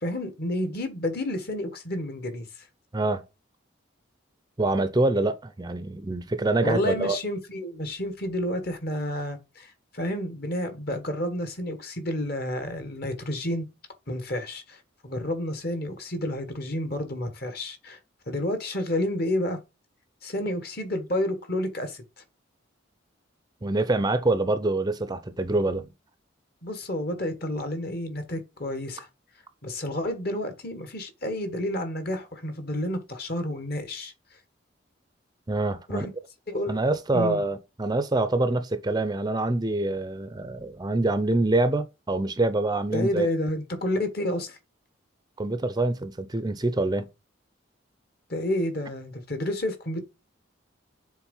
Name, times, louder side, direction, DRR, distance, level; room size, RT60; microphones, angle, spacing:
voice 1, 0.0-2.7 6.6-13.7 14.1-18.0 18.3-19.6 20.2-22.0 26.6-29.1 29.6-34.1 35.9-36.1 36.5-36.8 37.1-37.4 42.9-44.6 48.3-50.0, left 1 dB, 50° left, 1.6 m, -30 dB
voice 2, 4.6-7.2 23.6-25.9 35.5-36.1 36.7-43.3 45.4-47.1, right 2 dB, 20° right, 0.5 m, -25 dB
7.3 x 3.7 x 5.5 m
head